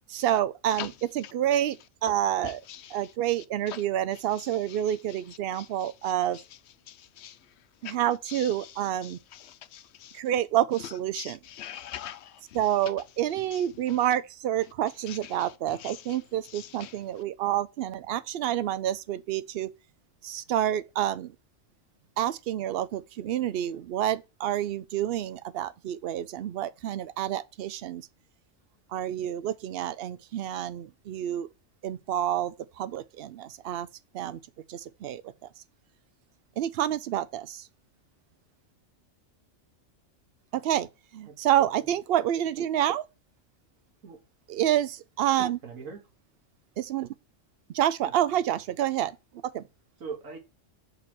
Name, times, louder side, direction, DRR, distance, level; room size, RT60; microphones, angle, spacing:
voice 1, 0.1-1.8 2.0-2.6 2.9-6.4 7.8-9.2 10.1-11.4 12.5-19.7 20.2-21.3 22.2-28.0 28.9-31.5 31.8-33.9 34.1-34.4 34.7-35.2 36.6-37.6 40.5-40.9 41.1-43.1 44.5-45.6 46.8-47.1 47.7-49.2 49.5-49.6, right 11 dB, 60° right, 0.7 m, -28 dB
voice 2, 2.4-3.1 3.7-3.8 4.4-4.9 5.5-6.4 6.9-7.4 7.8-8.0 8.3-8.7 9.0-10.2 10.8-12.6 13.5-13.6 13.9-14.0 15.1-16.2 16.4-17.0, left 11 dB, 65° left, 0.8 m, -44 dB
voice 3, 41.3-41.9 44.0-44.2 45.6-46.0 48.0-48.1 50.0-50.4, right 5 dB, 85° right, 1.8 m, -41 dB
6.1 x 5.2 x 4.3 m
omnidirectional pair, 1.3 m